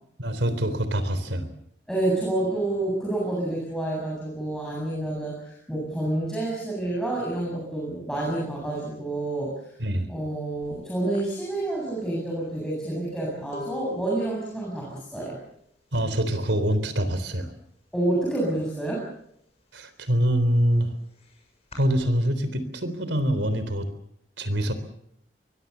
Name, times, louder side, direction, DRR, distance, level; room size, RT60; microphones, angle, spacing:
voice 1, 0.2-1.5 9.8-10.1 15.9-17.5 19.7-20.9 21.8-23.9 24.4-24.7, equal, 85° right, 11 dB, 3.8 m, -25 dB
voice 2, 1.9-9.8 10.1-15.4 17.9-19.0, right 1 dB, 5° left, -4 dB, 7.8 m, -28 dB
sound 1, 10.6-10.8 11.1-16.8 17.1-17.6 17.9-19.0 19.4-22.0, left 4 dB, 35° left, 7.2 m, -45 dB
24.0 x 22.5 x 7.0 m, 0.73 s
head